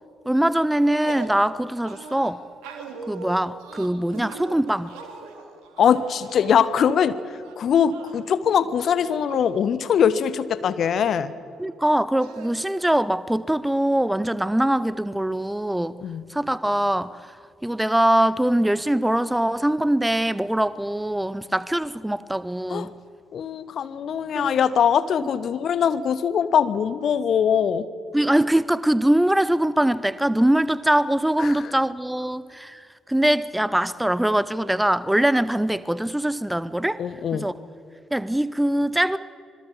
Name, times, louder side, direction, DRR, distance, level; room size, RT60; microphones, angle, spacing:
voice 1, 0.3-2.4 3.1-5.0 11.6-16.0 16.3-17.3 17.6-22.9 24.3-24.6 28.1-37.0 37.3-37.5 38.1-39.2, right 1 dB, 5° right, 0.8 m, -22 dB
sound 1, 0.7-1.4 1.8-7.1 7.4-8.3 8.9-9.5 9.9-10.0 10.2-11.2 12.2-12.5, right 4 dB, 65° right, 2.9 m, -40 dB
voice 2, 5.8-7.2 7.6-11.3 16.0-16.3 22.7-22.9 23.3-27.9 31.4-31.7 37.0-37.5, left 8 dB, 50° left, 1.0 m, -22 dB
26.0 x 22.0 x 7.2 m
figure-of-eight pair, 45°, 0 cm